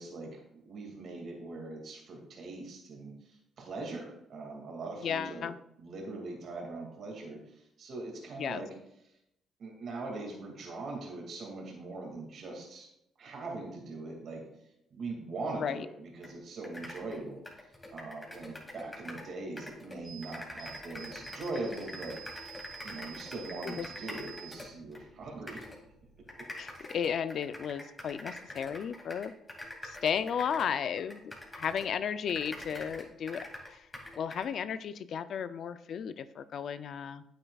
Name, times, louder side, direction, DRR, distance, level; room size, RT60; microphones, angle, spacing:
voice 1, 0.0-5.5 5.8-8.7 9.6-12.9 13.2-14.5 14.9-17.4 17.9-22.2 22.8-25.6 26.8-26.9, right 2 dB, 60° right, 0 dB, 2.1 m, -41 dB
voice 2, 5.0-5.6 8.4-8.6 15.6-15.9 23.6-23.9 26.6-29.3 29.8-33.9 34.2-37.2, left 7 dB, 65° left, 13 dB, 0.4 m, -34 dB
sound 1, 16.2-16.3 16.6-19.3 19.6-25.0 25.5-25.8 26.3-32.0 32.3-34.5, left 1 dB, 20° left, 2.4 m, -45 dB
sound 2, 20.0-26.5, right 8 dB, 20° right, 2.9 m, -50 dB
9.0 x 8.9 x 2.4 m, 0.82 s
cardioid pair, 90°, 0 cm